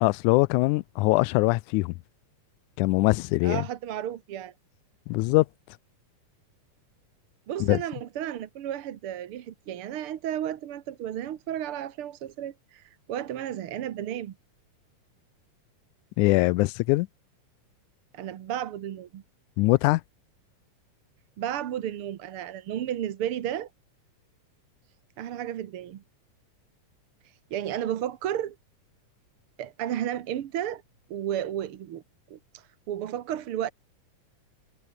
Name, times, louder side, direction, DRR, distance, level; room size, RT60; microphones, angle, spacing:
voice 1, 0.0-1.9 2.8-3.6 5.1-5.5 7.6-7.8 16.2-17.1 19.6-20.0, left 22 dB, 80° left, 1.9 m, -22 dB
voice 2, 3.4-4.5 7.5-14.4 18.1-19.2 21.4-23.7 25.2-26.0 27.5-28.6 29.6-30.8 31.1-32.0 32.3-33.7, right 11 dB, 60° right, 1.6 m, -33 dB
omnidirectional pair, 3.7 m